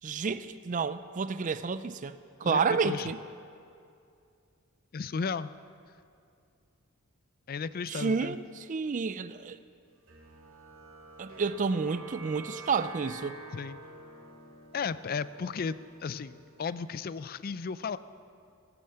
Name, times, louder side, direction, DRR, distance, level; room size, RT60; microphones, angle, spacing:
voice 1, 0.0-3.2 7.9-9.6 11.2-13.4, right 5 dB, 35° right, 13 dB, 0.4 m, -30 dB
voice 2, 2.4-3.1 4.9-5.5 7.5-8.4 13.5-13.8 14.7-18.0, left 5 dB, 40° left, 15 dB, 0.4 m, -34 dB
sound 1, 10.1-16.9, right 2 dB, 65° right, 2.6 m, -49 dB
18.0 x 9.0 x 7.7 m, 2.4 s
head